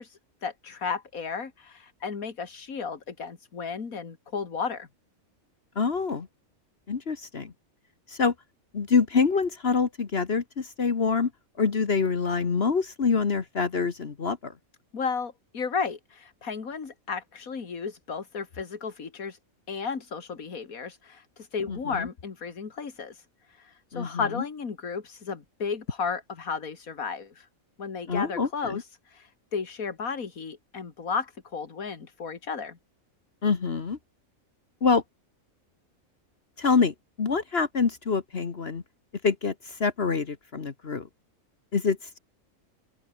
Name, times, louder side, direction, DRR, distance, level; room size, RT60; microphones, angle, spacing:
voice 1, 0.0-4.9 14.9-19.4 19.7-27.5 27.8-32.8, left 5 dB, 85° left, 2.5 m, -34 dB
voice 2, 5.7-6.3 6.9-7.5 8.1-8.3 8.7-11.3 11.6-14.5 21.7-22.1 23.9-24.2 28.1-28.8 33.4-34.0 34.8-35.0 36.6-38.8 39.2-41.1 41.7-42.2, left 5 dB, 50° left, 1.5 m, -26 dB
open air
omnidirectional pair, 1.4 m